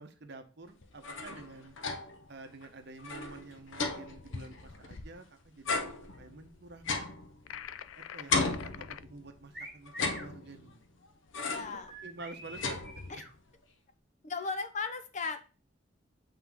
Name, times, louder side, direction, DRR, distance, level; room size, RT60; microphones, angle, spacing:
voice 1, 0.0-1.8 2.3-7.2 7.9-10.8 11.6-11.7 12.0-13.0, right 3 dB, 60° right, 0.9 m, -49 dB
sound 1, 0.8-2.3 2.6-2.7 3.0-5.2 5.6-7.9 8.3-9.4 9.9-10.8 11.3-11.8 12.2-13.4, left 4 dB, 70° left, 0.8 m, -35 dB
sound 2, 7.5-9.0, left 10 dB, 90° left, 0.4 m, -45 dB
sound 3, 9.5-10.3 11.8-13.3, equal, ahead, 1.6 m, -46 dB
voice 2, 11.4-11.9 14.2-15.4, left 4 dB, 40° left, 0.6 m, -36 dB
7.8 x 3.8 x 3.6 m
head